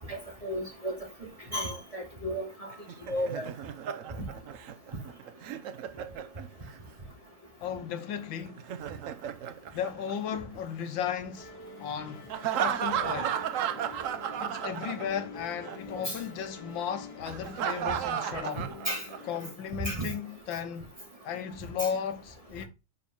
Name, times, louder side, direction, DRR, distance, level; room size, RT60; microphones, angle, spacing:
voice 1, 0.1-1.0 1.5-2.7 3.1-3.5 16.0-16.2 18.9-19.0 19.8-20.1, equal, 20° right, 2.1 m, -33 dB
Laughter, 2.7-6.8 8.5-10.6 12.3-15.4 15.6-15.8 17.3-19.4, right 9 dB, 80° right, 0.7 m, -34 dB
voice 2, 7.6-8.6 9.7-11.5 11.8-12.3 12.6-13.4 14.4-18.6 19.2-20.9 21.2-22.7, left 8 dB, 80° left, 1.6 m, -35 dB
sound 1, 11.4-19.5, left 3 dB, 60° left, 2.4 m, -47 dB
5.3 x 5.2 x 5.5 m
omnidirectional pair, 2.1 m